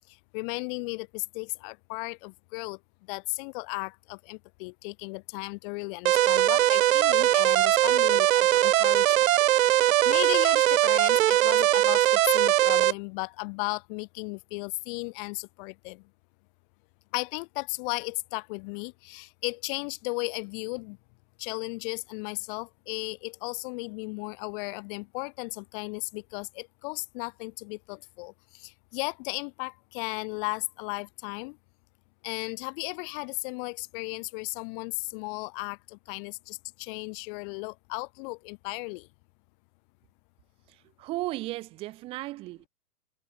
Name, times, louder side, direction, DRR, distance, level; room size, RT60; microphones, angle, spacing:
voice 1, 0.1-2.8 3.1-9.3 9.6-16.0 17.1-21.0 21.4-31.6 32.2-39.1, left 31 dB, 30° left, 7.2 m, -35 dB
sound 1, 6.1-12.9, right 13 dB, 55° right, 0.7 m, -21 dB
voice 2, 41.0-42.7, right 18 dB, 10° right, 0.7 m, -35 dB
hypercardioid pair, 165°, 48 cm